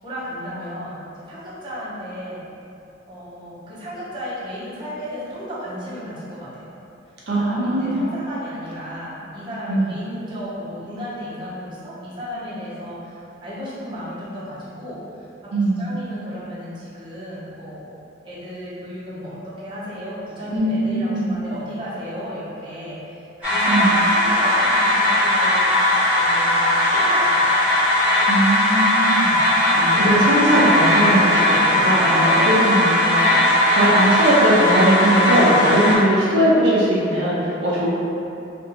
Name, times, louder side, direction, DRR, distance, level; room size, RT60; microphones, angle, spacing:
voice 1, 0.0-2.4 3.1-6.7 7.4-17.9 18.2-27.5 29.8-30.5 30.8-31.3 32.0-32.8, equal, 25° right, -10 dB, 0.7 m, -34 dB
voice 2, 7.3-8.1 9.7-9.9 15.5-15.9 20.5-21.3 23.7-24.0 28.3-32.3 32.6-37.9, right 1 dB, 60° right, -7 dB, 0.6 m, -20 dB
sound 1, 23.4-35.9, left 1 dB, 5° right, 1.1 m, -18 dB
2.6 x 2.5 x 3.8 m, 2.8 s
head